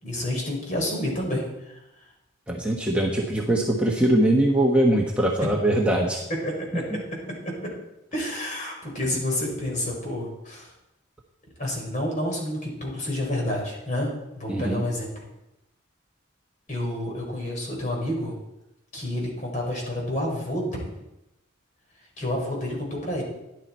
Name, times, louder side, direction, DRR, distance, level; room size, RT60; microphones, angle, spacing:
voice 1, 0.0-1.8 5.4-5.8 6.4-7.7 8.1-10.7 11.6-15.3 16.7-18.3 18.9-21.0 22.2-23.2, left 1 dB, 40° left, -1 dB, 4.4 m, -29 dB
voice 2, 2.5-6.2 6.9-7.0 14.5-14.8, right 1 dB, 5° right, -3 dB, 1.2 m, -22 dB
14.5 x 11.0 x 4.4 m, 0.91 s
head